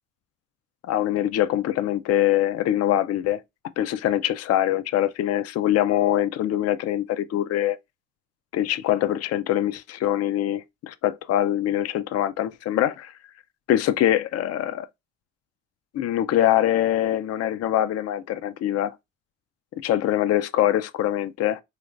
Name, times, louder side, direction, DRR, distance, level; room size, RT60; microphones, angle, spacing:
voice 1, 0.9-3.4 3.8-7.8 8.5-13.1 13.7-14.9 15.9-19.0 19.8-21.6, left 12 dB, 55° left, 0.4 m, -23 dB
3.2 x 3.1 x 2.4 m
cardioid pair, 90°, 30 cm